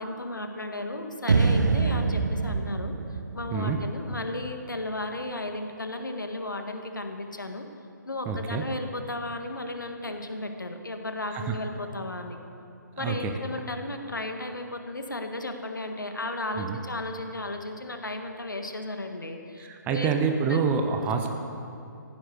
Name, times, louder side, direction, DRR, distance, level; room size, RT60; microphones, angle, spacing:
voice 1, 0.0-2.9 3.3-7.6 8.0-12.4 13.0-20.1 20.5-20.6, left 2 dB, 75° left, 5 dB, 1.7 m, -34 dB
sound 1, 1.3-4.5, right 4 dB, 60° right, 1.0 m, -25 dB
voice 2, 8.3-8.6 11.3-11.5 13.0-13.3 16.6-16.8 19.6-21.3, right 6 dB, 15° right, 5 dB, 0.9 m, -27 dB
15.0 x 12.0 x 6.6 m, 2.7 s
figure-of-eight pair, 135°, 10 cm